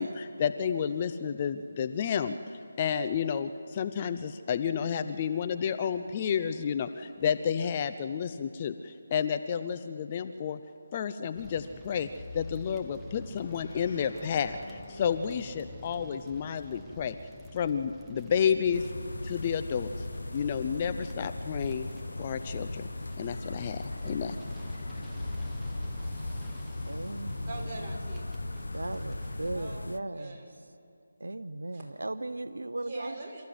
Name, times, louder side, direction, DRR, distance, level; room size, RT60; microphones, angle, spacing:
voice 1, 0.0-10.6 10.9-12.1 12.3-17.1 17.5-18.9 19.2-20.1 20.3-21.9 22.2-22.9 23.2-24.4, left 7 dB, 30° left, 0.6 m, -31 dB
sound 1, 11.4-29.5, equal, 5° right, 1.4 m, -51 dB
sound 2, 12.2-22.0 23.0-24.0, left 2 dB, 55° left, 6.3 m, -49 dB
sound 3, 18.7-30.0, left 2 dB, 85° left, 0.6 m, -37 dB
voice 2, 26.9-27.5 28.7-30.4 31.2-33.2, right 2 dB, 85° right, 0.7 m, -37 dB
voice 3, 27.4-28.3 29.5-30.6 31.7-31.8 32.8-33.4, right 2 dB, 20° right, 4.7 m, -43 dB
28.0 x 14.0 x 7.9 m
figure-of-eight pair, 160°, 0 cm